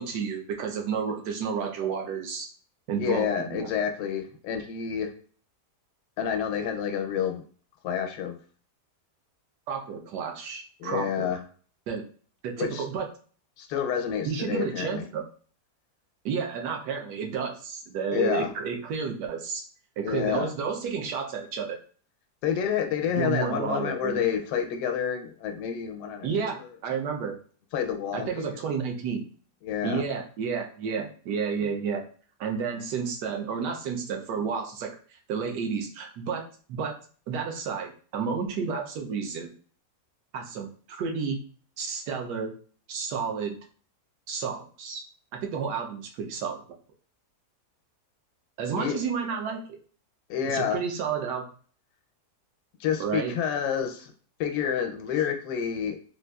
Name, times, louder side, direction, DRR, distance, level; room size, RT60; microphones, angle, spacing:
voice 1, 0.0-2.5 2.9-3.7 9.7-11.3 11.9-12.0 12.4-13.1 14.2-15.3 16.2-19.6 20.0-21.8 23.1-24.2 26.2-26.6 26.8-27.4 28.1-29.3 29.8-32.0 32.4-36.4 36.7-36.9 37.3-39.5 40.3-41.4 41.8-42.5 42.9-43.6 44.3-45.0 45.3-46.6 48.6-49.6 50.5-51.5 53.0-53.4, right 6 dB, 85° right, 2 dB, 1.2 m, -31 dB
voice 2, 3.0-5.1 6.2-7.4 7.8-8.4 10.8-11.4 12.6-12.8 13.6-15.0 18.1-18.5 20.0-20.5 22.4-26.7 27.7-28.6 29.6-30.0 48.8-49.0 50.3-50.8 52.8-54.1 54.4-56.0, left 8 dB, 85° left, 5 dB, 1.2 m, -29 dB
4.0 x 2.4 x 2.2 m, 0.43 s
omnidirectional pair, 1.7 m